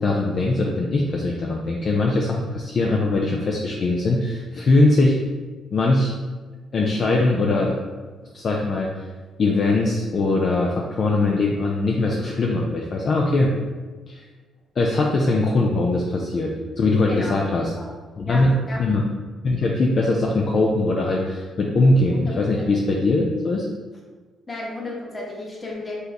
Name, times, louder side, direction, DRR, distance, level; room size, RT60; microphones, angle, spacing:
voice 1, 0.0-5.2 5.7-6.1 6.7-7.8 8.3-8.9 9.4-13.5 14.1-14.2 14.8-17.7 18.2-19.0 19.4-23.7, left 2 dB, 50° left, -1 dB, 0.5 m, -21 dB
voice 2, 17.1-17.4 17.7-17.9 18.3-18.8 22.1-22.8 24.5-26.0, left 2 dB, 30° left, -3 dB, 1.3 m, -33 dB
4.4 x 3.3 x 2.9 m, 1.3 s
cardioid pair, 90°, 0 cm